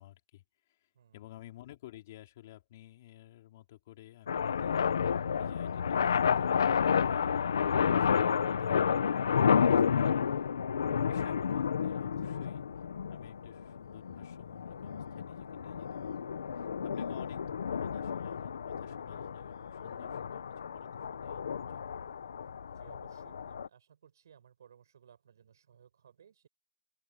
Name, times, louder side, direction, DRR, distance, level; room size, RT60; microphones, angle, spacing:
voice 1, 0.0-7.4 8.0-10.3 11.0-12.7 13.1-20.4 20.7-21.4 21.7-21.9, left 14 dB, 35° left, 3.9 m, -54 dB
sound 1, 4.3-23.7, left 7 dB, 75° left, 1.2 m, -31 dB
voice 2, 12.1-12.4 16.8-17.1 22.7-26.5, right 8 dB, 65° right, 7.2 m, -60 dB
open air
hypercardioid pair, 170°, 2 cm